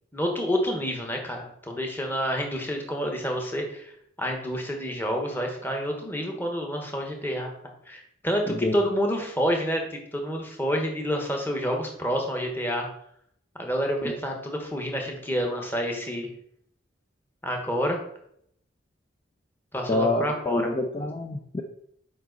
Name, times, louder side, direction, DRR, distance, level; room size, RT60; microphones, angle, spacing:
voice 1, 0.1-3.9 4.2-7.5 7.9-12.9 13.6-16.3 17.4-18.0 19.7-20.7, equal, 10° left, 2 dB, 1.2 m, -28 dB
voice 2, 19.9-21.6, left 2 dB, 25° left, 3 dB, 0.5 m, -27 dB
7.5 x 5.2 x 4.0 m, 0.70 s
head